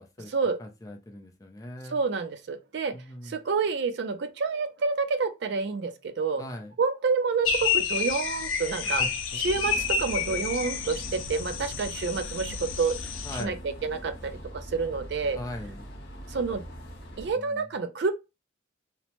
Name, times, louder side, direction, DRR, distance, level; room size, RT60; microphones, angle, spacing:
voice 1, 0.0-0.3 0.6-2.0 2.9-3.3 6.4-6.7 8.8-9.5 13.2-13.6 15.4-15.9 17.4-17.7, left 1 dB, 15° left, 0.4 m, -40 dB
voice 2, 1.9-3.0 3.2-6.4 6.8-9.0 9.4-13.0 13.4-15.4 16.3-16.6 17.2-18.1, right 4 dB, 55° right, 0.3 m, -28 dB
sound 1, 7.5-13.4, left 6 dB, 85° left, 0.5 m, -30 dB
sound 2, 9.4-17.3, equal, 55° left, 0.8 m, -42 dB
2.8 x 2.1 x 2.9 m
head